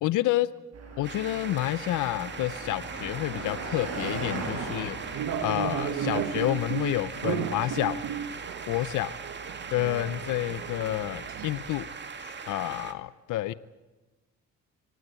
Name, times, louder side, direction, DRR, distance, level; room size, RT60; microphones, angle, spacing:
voice 1, 0.0-0.5 1.0-5.0 5.4-8.0 8.7-9.1 9.7-11.9 12.2-13.5, left 15 dB, 80° left, 16 dB, 0.7 m, -29 dB
Car passing by, 0.7-11.9, right 3 dB, 55° right, 6.0 m, -41 dB
sound 1, 1.0-12.9, right 5 dB, 35° right, 2.4 m, -40 dB
sound 2, 5.1-11.5, right 9 dB, 80° right, 1.3 m, -34 dB
25.0 x 19.0 x 8.2 m, 1.2 s
cardioid pair, 90°, 30 cm